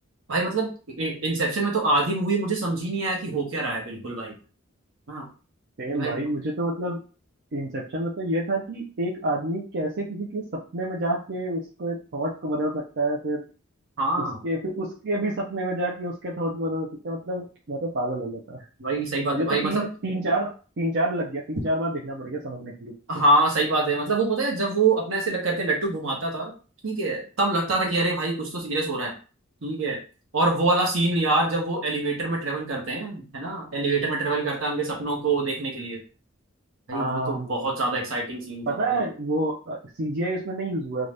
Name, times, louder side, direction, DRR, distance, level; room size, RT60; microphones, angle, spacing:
voice 1, 0.3-4.4 5.1-5.2 5.9-6.2 14.0-14.4 18.8-19.9 23.1-26.5 26.8-29.1 29.6-30.0 30.3-36.0 36.9-39.0, right 2 dB, 75° right, 0 dB, 1.0 m, -25 dB
voice 2, 5.8-7.0 7.5-13.5 14.2-18.6 19.3-22.9 36.9-37.7 38.7-41.1, right 1 dB, 55° right, -3 dB, 0.5 m, -28 dB
2.6 x 2.4 x 3.2 m, 0.36 s
head